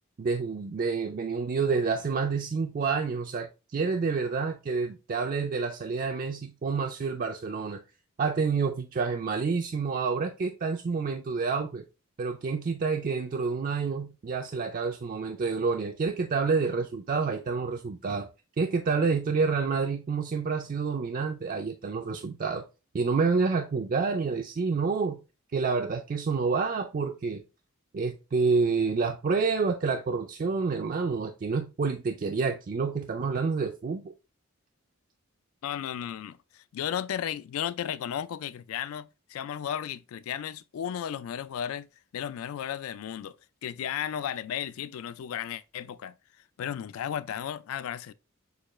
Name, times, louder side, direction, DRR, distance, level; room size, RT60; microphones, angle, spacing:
voice 1, 0.2-7.8 8.2-11.9 12.2-18.3 18.6-22.6 22.9-25.2 25.5-27.4 27.9-34.1, right 4 dB, 40° right, 0.3 m, -28 dB
voice 2, 35.6-41.9 42.1-43.4 43.6-46.1 46.6-48.1, left 9 dB, 75° left, 0.3 m, -34 dB
6.6 x 2.3 x 3.0 m
head